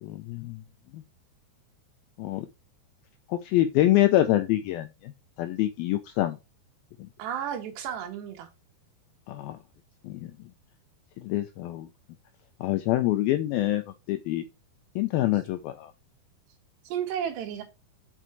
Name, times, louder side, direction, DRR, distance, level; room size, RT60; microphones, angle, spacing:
voice 1, 0.0-0.6 0.9-1.0 2.2-2.5 3.3-5.1 5.4-6.4 9.3-9.6 10.0-10.3 11.2-11.9 12.6-13.8 14.1-14.5 15.0-15.9, left 14 dB, 85° left, 2.1 m, -25 dB
voice 2, 7.2-8.5 16.8-17.6, right 9 dB, 90° right, 3.5 m, -32 dB
6.1 x 5.6 x 4.5 m
omnidirectional pair, 4.8 m